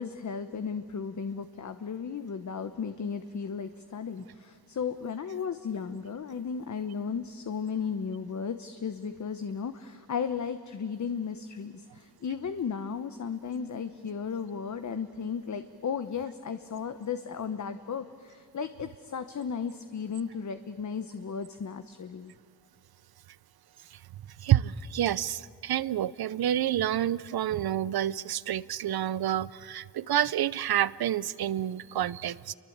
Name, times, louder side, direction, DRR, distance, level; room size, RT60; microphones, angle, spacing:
voice 1, 0.0-22.3, left 6 dB, 45° left, 1.0 m, -35 dB
voice 2, 24.4-32.5, right 11 dB, 65° right, 0.7 m, -28 dB
29.0 x 23.5 x 8.7 m
wide cardioid pair, 120°, 40 cm